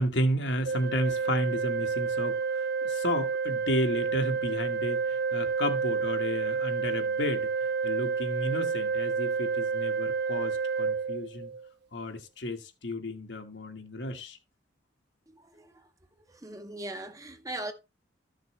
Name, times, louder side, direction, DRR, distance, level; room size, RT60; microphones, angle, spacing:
voice 1, 0.0-7.5 7.8-11.5 11.9-14.4, equal, 75° left, 1.5 m, -32 dB
Organ, 0.6-11.7, right 5 dB, 60° right, 0.5 m, -30 dB
voice 2, 16.4-17.7, right 1 dB, 20° right, 0.8 m, -38 dB
13.5 x 6.6 x 3.1 m
head